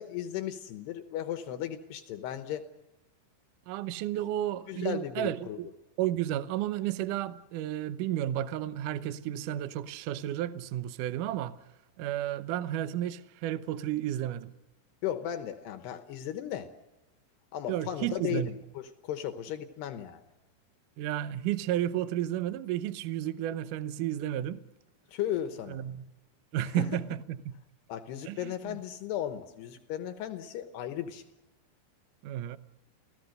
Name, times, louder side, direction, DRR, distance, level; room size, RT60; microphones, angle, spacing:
voice 1, 0.0-2.7 4.7-5.6 15.0-16.7 17.5-20.2 25.1-25.8 26.7-27.0 27.9-31.3, left 11 dB, 75° left, 3.1 m, -36 dB
voice 2, 3.7-5.7 6.0-11.6 12.0-14.5 17.7-18.5 21.0-24.6 25.7-26.0 26.5-27.5 28.3-28.8 32.2-32.6, right 12 dB, 80° right, 1.8 m, -32 dB
29.5 x 17.0 x 6.6 m
omnidirectional pair, 4.8 m